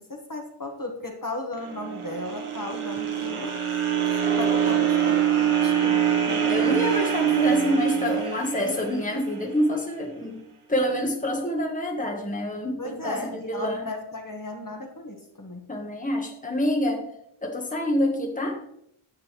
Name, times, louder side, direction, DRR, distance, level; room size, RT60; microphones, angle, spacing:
voice 1, 0.0-3.6 4.2-6.1 12.8-15.7, left 2 dB, 40° left, 2 dB, 1.6 m, -35 dB
sound 1, 1.6-9.8, right 9 dB, 80° right, 1.4 m, -24 dB
voice 2, 6.2-13.9 15.7-17.1 17.4-18.6, left 1 dB, 15° left, 1 dB, 1.3 m, -27 dB
10.5 x 7.4 x 3.2 m, 0.74 s
wide cardioid pair, 65°, 50 cm